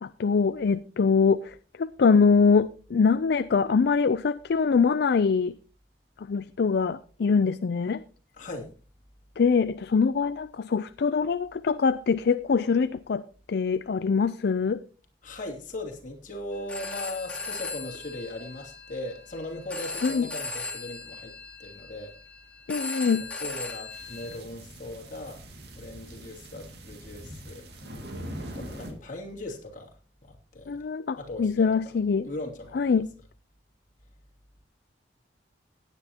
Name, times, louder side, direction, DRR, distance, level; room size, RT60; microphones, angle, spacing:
voice 1, 0.0-5.5 6.2-8.0 9.4-13.2 13.5-14.8 20.0-20.3 22.7-23.3 30.7-32.3 32.7-33.1, left 5 dB, 65° left, 0.4 m, -23 dB
voice 2, 8.3-8.7 15.2-22.1 23.4-25.4 25.8-27.7 28.5-29.9 30.2-30.8 31.2-31.7 32.2-32.9, left 2 dB, 45° left, 2.8 m, -38 dB
Telephone, 16.5-24.4, left 3 dB, 5° left, 2.8 m, -38 dB
sound 1, 23.9-28.9, equal, 65° right, 2.2 m, -42 dB
16.5 x 9.9 x 2.9 m
head